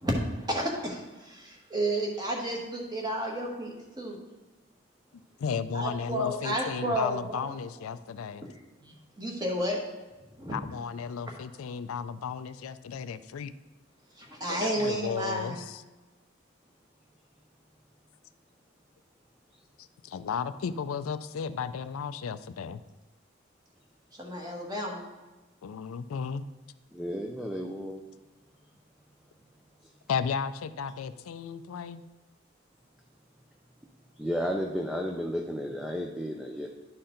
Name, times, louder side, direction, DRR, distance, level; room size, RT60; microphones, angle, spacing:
voice 1, 0.0-4.2 5.7-7.5 8.8-9.8 10.4-10.5 14.1-15.6 24.2-25.1, right 1 dB, 20° right, -1 dB, 1.3 m, -32 dB
voice 2, 5.4-8.5 10.5-13.5 14.5-15.8 19.8-22.8 25.6-26.5 27.8-27.9 30.1-32.0, left 6 dB, 85° left, 13 dB, 0.4 m, -34 dB
voice 3, 26.9-28.0 29.8-29.9 34.2-36.8, equal, ahead, 1 dB, 0.4 m, -33 dB
11.0 x 4.3 x 3.8 m, 1.2 s
head